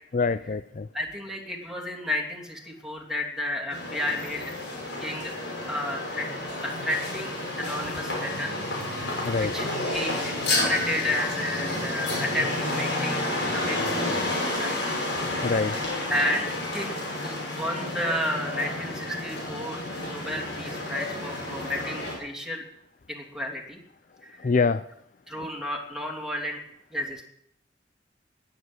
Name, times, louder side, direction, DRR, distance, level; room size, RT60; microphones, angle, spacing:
voice 1, 0.1-0.9 9.2-9.5 15.4-15.8 24.4-24.8, left 4 dB, 45° left, 14 dB, 0.5 m, -25 dB
voice 2, 0.9-4.5 5.0-5.3 5.7-6.3 6.6-8.5 8.9-13.8 14.2-14.8 16.1-22.6 23.1-23.8 24.2-24.5 25.3-26.6 26.9-27.2, left 1 dB, 5° right, 1 dB, 2.9 m, -32 dB
sound 1, 3.7-22.2, left 1 dB, 70° left, 5.7 m, -30 dB
20.0 x 8.0 x 8.1 m, 0.74 s
head